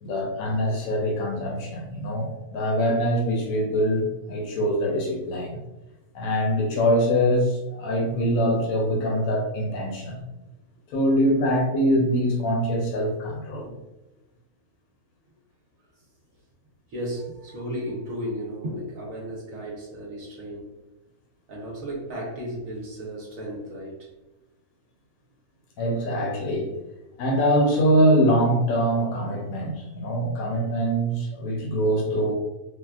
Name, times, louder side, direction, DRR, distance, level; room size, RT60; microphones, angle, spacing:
voice 1, 0.0-5.6 6.1-10.2 10.9-13.7 25.8-26.7 27.2-32.3, equal, 70° left, -1 dB, 1.1 m, -23 dB
voice 2, 16.9-20.7 21.5-24.1, equal, 65° right, -3 dB, 1.2 m, -34 dB
4.1 x 2.2 x 2.3 m, 1.0 s
omnidirectional pair, 1.6 m